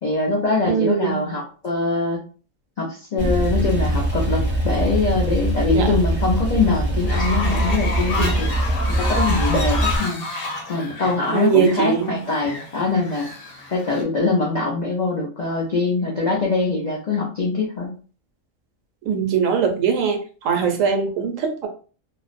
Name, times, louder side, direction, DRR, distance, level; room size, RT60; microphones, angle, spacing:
voice 1, 0.0-2.2 2.8-10.2 10.7-13.3 13.7-17.9, left 3 dB, 70° left, -2 dB, 0.4 m, -23 dB
voice 2, 0.7-1.2 5.7-6.0 8.2-8.3 11.3-12.2 19.0-21.7, right 7 dB, 75° right, 4 dB, 0.9 m, -21 dB
Male speech man speaking / Car / Idling, 3.2-10.0, right 1 dB, 10° right, 0.5 m, -22 dB
Fowl, 7.0-14.0, left 2 dB, 50° left, 0.9 m, -30 dB
2.5 x 2.0 x 2.4 m, 0.38 s
omnidirectional pair, 1.4 m